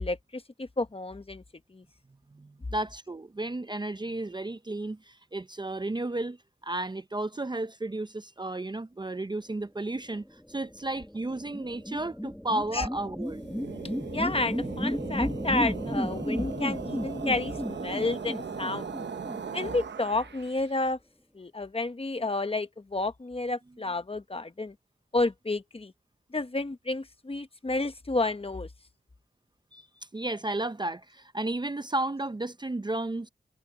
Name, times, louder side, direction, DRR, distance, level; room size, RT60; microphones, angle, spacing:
voice 1, 0.0-1.4 1.7-1.8 12.7-12.9 14.1-18.9 19.5-21.0 21.3-24.7 25.1-25.9 26.3-28.7, left 2 dB, 30° left, 1.0 m, -30 dB
voice 2, 2.3-6.4 6.6-13.4 29.7-29.9 30.1-33.3, right 2 dB, 25° right, 0.6 m, -33 dB
sound 1, 10.4-20.2, equal, 5° left, 1.1 m, -34 dB
sound 2, 13.3-20.7, right 6 dB, 80° right, 0.9 m, -39 dB
wide cardioid pair, 90°, 18 cm